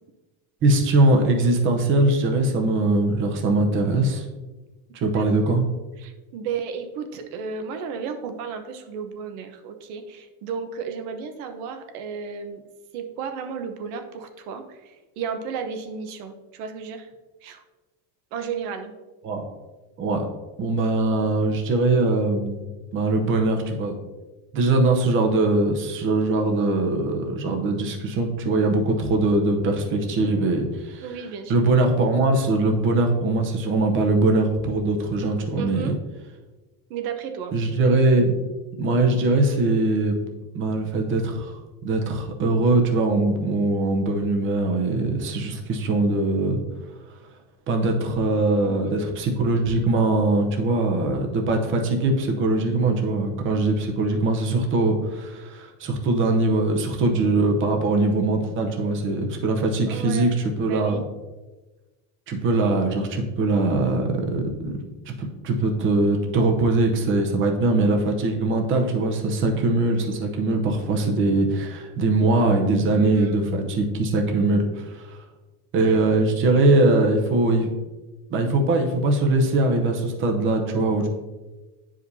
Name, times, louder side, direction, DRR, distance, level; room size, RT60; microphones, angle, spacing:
voice 1, 0.6-4.2 5.0-5.6 19.2-19.4 20.0-20.2 20.6-22.6 22.9-23.9 24.5-31.1 31.5-35.9 37.5-38.3 38.8-40.1 40.5-46.6 47.7-61.0 62.3-64.7 65.2-75.2 75.7-77.7 78.3-81.1, right 2 dB, 30° right, 3 dB, 0.8 m, -21 dB
voice 2, 5.1-5.5 6.0-12.6 12.9-17.1 17.4-17.6 18.3-18.9 31.0-31.5 35.6-36.0 36.9-37.5 48.6-49.0 59.9-60.3 60.6-61.0 73.0-73.4 75.9-76.0, right 6 dB, 75° right, 6 dB, 1.0 m, -33 dB
9.8 x 5.0 x 2.7 m, 1.2 s
cardioid pair, 165°, 44 cm